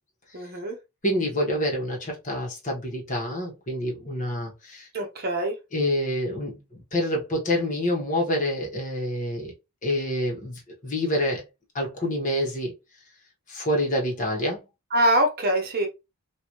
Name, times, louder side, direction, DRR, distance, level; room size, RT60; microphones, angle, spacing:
voice 1, 0.3-0.8 4.9-5.6 14.9-15.9, right 1 dB, 45° right, 0.9 m, -24 dB
voice 2, 1.0-4.9 5.7-9.5 9.8-11.4 11.7-12.7 13.5-14.6, left 1 dB, 35° left, 1.3 m, -27 dB
3.9 x 2.7 x 3.1 m
head